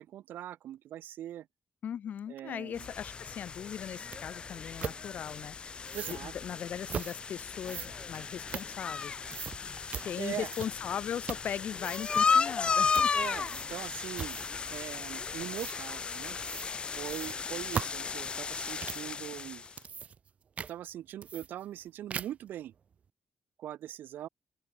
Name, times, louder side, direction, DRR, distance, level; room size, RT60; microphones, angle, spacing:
voice 1, 0.0-1.5 2.3-2.9 5.9-6.3 9.9-10.5 13.1-14.4 14.7-16.4 17.0-19.7 20.7-22.7 23.6-24.3, right 12 dB, 80° right, 3.7 m, -41 dB
voice 2, 1.8-5.5 6.1-9.2 10.0-13.1, left 9 dB, 55° left, 3.0 m, -38 dB
sound 1, 2.8-19.7, left 5 dB, 30° left, 0.4 m, -34 dB
Sliding Placing Putting Down Playing Card Cards, 4.1-4.2 4.8-5.0 5.8-6.2 6.9-7.2 7.6-9.0 9.3-9.6 9.9-10.1 10.5-10.9 11.2-11.5 11.8-12.2 12.9-13.1 13.4-13.8 14.1-14.6 15.5-15.8 16.4-16.7 17.0-19.1 19.6-20.3 20.6-20.7 21.2-21.8 22.1-22.5, right 7 dB, 45° right, 3.0 m, -39 dB
sound 2, 4.5-5.4 6.2-6.5 6.8-14.6, equal, 5° right, 4.6 m, -56 dB
open air
cardioid pair, 140°, 3 cm